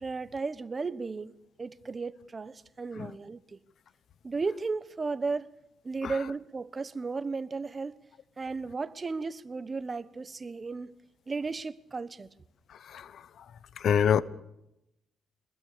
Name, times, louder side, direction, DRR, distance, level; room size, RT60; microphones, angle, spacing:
voice 1, 0.0-3.6 4.2-5.5 5.8-8.0 8.4-10.9 11.3-12.3, right 4 dB, 30° right, 1.3 m, -35 dB
voice 2, 12.8-13.4 13.8-14.2, left 8 dB, 65° left, 1.0 m, -27 dB
25.5 x 21.5 x 6.9 m
cardioid pair, 90°, 0 cm